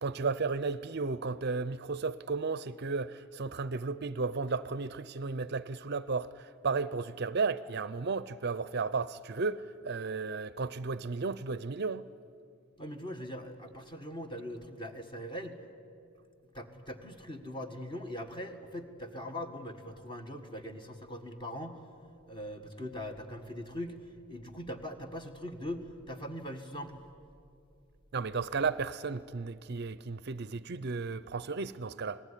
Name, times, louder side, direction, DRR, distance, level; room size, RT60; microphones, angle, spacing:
voice 1, 0.0-12.0 28.1-32.2, right 4 dB, 50° right, 0.6 m, -34 dB
voice 2, 12.8-15.6 16.5-21.8 22.3-27.0, equal, 25° left, 1.7 m, -41 dB
27.0 x 19.0 x 10.0 m
head